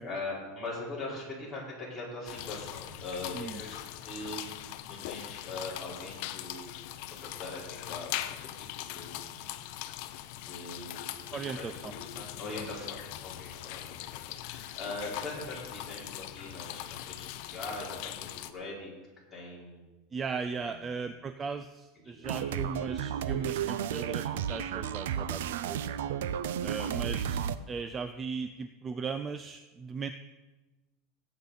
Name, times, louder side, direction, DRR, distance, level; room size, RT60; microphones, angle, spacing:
voice 1, 0.0-3.8 4.0-4.6 4.9-8.2 8.4-9.4 10.4-18.9 19.3-19.8 20.6-21.0 22.0-22.7 26.9-27.0, left 2 dB, 10° left, -7 dB, 4.3 m, -42 dB
sound 1, 2.2-18.5, left 14 dB, 55° left, 0.6 m, -41 dB
voice 2, 11.3-11.9 12.6-12.7 20.1-26.0 26.6-27.4 27.7-30.1, right 5 dB, 20° right, 10 dB, 0.4 m, -37 dB
sound 2, 22.2-27.6, right 9 dB, 90° right, 0.6 m, -33 dB
17.0 x 8.5 x 4.1 m, 1.1 s
supercardioid pair, 160°, 0 cm